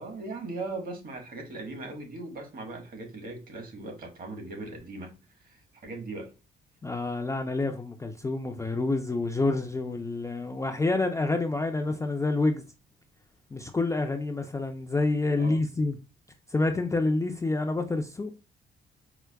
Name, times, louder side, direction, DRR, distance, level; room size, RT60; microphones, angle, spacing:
voice 1, 0.0-5.1 5.4-6.3 15.4-15.6, right 2 dB, 45° right, 1.3 m, -39 dB
voice 2, 6.8-12.6 13.5-16.0 16.5-18.3, left 2 dB, 15° left, 0.4 m, -28 dB
4.5 x 2.1 x 2.2 m
cardioid pair, 90°, 20 cm